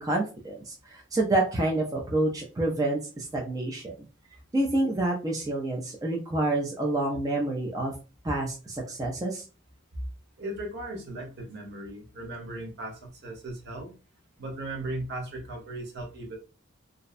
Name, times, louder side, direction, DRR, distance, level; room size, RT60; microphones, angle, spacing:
voice 1, 0.0-3.9 4.5-7.9 8.2-9.4, right 2 dB, 20° right, -2 dB, 0.4 m, -28 dB
voice 2, 10.4-13.9 14.4-16.4, right 1 dB, 55° right, 1 dB, 0.7 m, -37 dB
2.6 x 2.0 x 2.4 m, 0.33 s
head